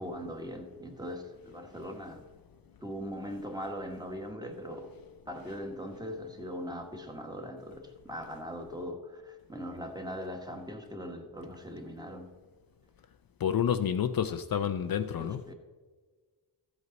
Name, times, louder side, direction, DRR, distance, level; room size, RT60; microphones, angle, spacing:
voice 1, 0.0-2.3 2.8-4.9 5.3-12.3 15.2-15.5, equal, 10° right, 1.3 m, -40 dB
voice 2, 13.4-15.4, left 8 dB, 55° left, 0.5 m, -29 dB
14.0 x 8.2 x 4.0 m
wide cardioid pair, 155°, 43 cm